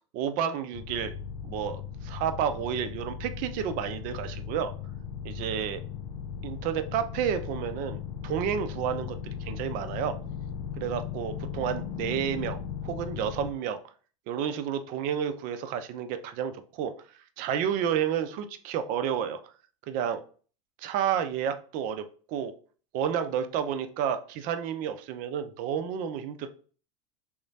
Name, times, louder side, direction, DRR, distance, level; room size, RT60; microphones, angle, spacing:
voice 1, 0.1-1.1 1.4-4.7 5.2-5.8 6.4-10.2 10.7-12.6 12.8-13.8 14.3-16.9 17.4-19.4 19.9-20.2 20.8-22.5 22.9-26.5, right 8 dB, 50° right, 10 dB, 0.4 m, -30 dB
sound 1, 0.7-13.5, left 8 dB, 70° left, 0.4 m, -37 dB
2.9 x 2.1 x 2.7 m, 0.40 s
hypercardioid pair, 95°, 18 cm